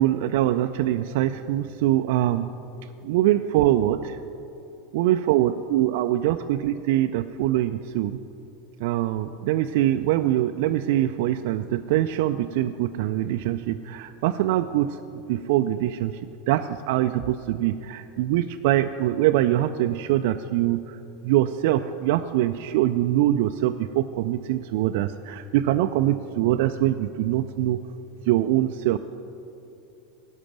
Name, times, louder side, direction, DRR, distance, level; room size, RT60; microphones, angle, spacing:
voice 1, 0.0-2.5 3.0-4.2 4.9-8.2 8.8-15.0 15.3-16.1 16.5-21.0 21.2-27.8 28.3-29.0, right 13 dB, 60° right, 8 dB, 0.3 m, -23 dB
11.0 x 5.9 x 9.0 m, 2.9 s
figure-of-eight pair, 85°, 0 cm